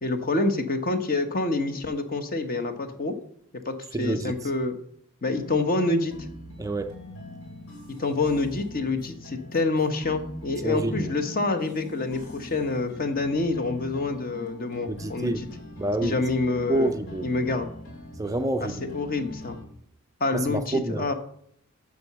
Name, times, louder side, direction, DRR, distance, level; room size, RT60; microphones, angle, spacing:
voice 1, 0.0-3.2 3.6-4.8 5.2-6.1 8.0-15.5 16.0-16.9 17.2-17.7 18.6-19.6 20.2-21.1, left 3 dB, 40° left, 1.0 m, -27 dB
voice 2, 3.9-4.3 6.6-6.9 10.6-11.1 14.9-15.4 15.8-16.2 16.7-17.2 18.2-18.7 20.3-21.1, right 2 dB, 15° right, 0.4 m, -27 dB
sound 1, 5.3-19.6, left 2 dB, 65° left, 3.5 m, -42 dB
7.8 x 6.9 x 6.8 m
head